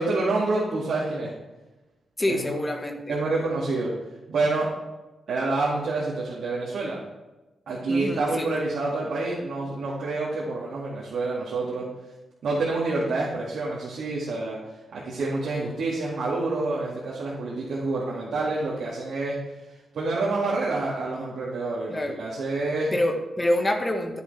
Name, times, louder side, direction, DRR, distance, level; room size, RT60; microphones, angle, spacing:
voice 1, 0.0-1.3 2.3-2.5 3.1-3.9 4.3-4.7 5.3-7.0 7.7-11.9 12.4-14.6 14.9-19.4 19.9-22.9, right 3 dB, 75° right, -6 dB, 2.2 m, -27 dB
voice 2, 2.2-3.2 7.9-8.5 21.9-22.2 22.9-24.2, left 1 dB, 30° left, 4 dB, 1.5 m, -26 dB
10.5 x 9.9 x 3.4 m, 1.1 s
supercardioid pair, 40°, 0 cm